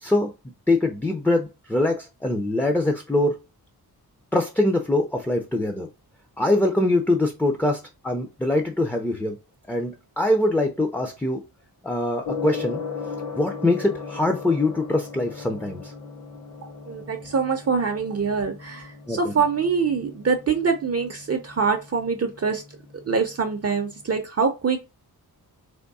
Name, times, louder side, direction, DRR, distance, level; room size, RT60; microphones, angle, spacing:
voice 1, 0.7-3.3 4.3-5.9 6.4-9.4 9.7-11.4 11.8-12.8 13.4-15.9 19.1-19.3, left 1 dB, 5° left, 4 dB, 0.5 m, -23 dB
Gong, 12.2-24.2, left 5 dB, 45° left, 0.9 m, -38 dB
voice 2, 16.9-22.6 23.1-24.8, right 5 dB, 40° right, 6 dB, 0.6 m, -24 dB
3.5 x 3.0 x 4.0 m, 0.27 s
wide cardioid pair, 155°, 39 cm